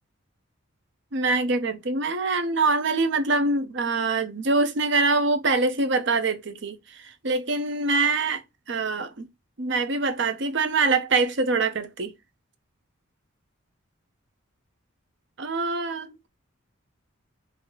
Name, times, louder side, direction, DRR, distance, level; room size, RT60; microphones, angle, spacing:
voice 1, 1.1-8.4 8.7-9.3 9.6-12.1 15.4-16.3, right 3 dB, 60° right, 0.7 m, -24 dB
3.9 x 2.8 x 3.0 m
head